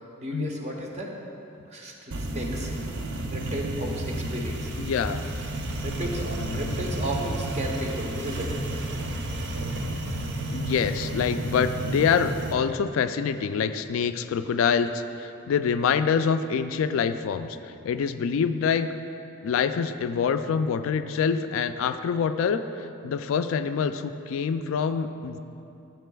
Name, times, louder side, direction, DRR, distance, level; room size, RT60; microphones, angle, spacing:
voice 1, 0.2-1.1 1.7-2.7 3.3-4.7 5.8-8.5 9.0-9.1, right 1 dB, 35° right, 0 dB, 0.9 m, -33 dB
sound 1, 2.1-12.5, right 1 dB, 60° right, 0.6 m, -31 dB
voice 2, 4.8-5.2 6.4-6.7 10.5-17.6 17.8-18.9 19.4-25.4, left 6 dB, 75° left, 11 dB, 0.3 m, -26 dB
12.5 x 7.3 x 2.3 m, 2.8 s
head